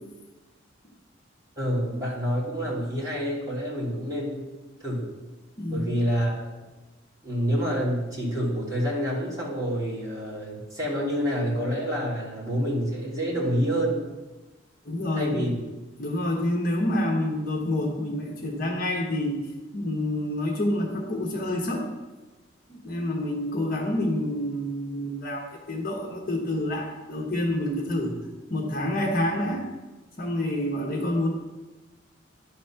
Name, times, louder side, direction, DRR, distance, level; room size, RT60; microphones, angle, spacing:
voice 1, 1.6-4.4 4.8-5.1 5.7-6.5 7.2-14.0 15.1-15.5, equal, 20° right, -7 dB, 2.9 m, -27 dB
voice 2, 5.6-5.9 14.8-15.4 16.0-19.4 19.7-21.9 22.7-28.2 28.5-29.6 30.2-31.3, left 1 dB, 50° left, 0 dB, 1.3 m, -28 dB
11.0 x 4.2 x 5.8 m, 1.1 s
head